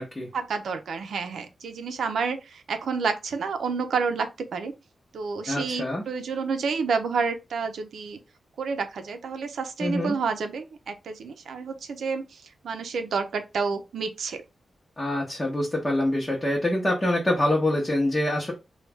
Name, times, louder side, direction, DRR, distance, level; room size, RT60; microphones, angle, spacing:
voice 1, 0.3-4.7 5.1-8.2 8.6-14.4, right 5 dB, 80° right, 0.6 m, -29 dB
voice 2, 5.5-6.0 9.8-10.2 15.0-18.5, left 1 dB, 20° left, 0.8 m, -25 dB
3.1 x 2.3 x 3.4 m
wide cardioid pair, 140°, 0 cm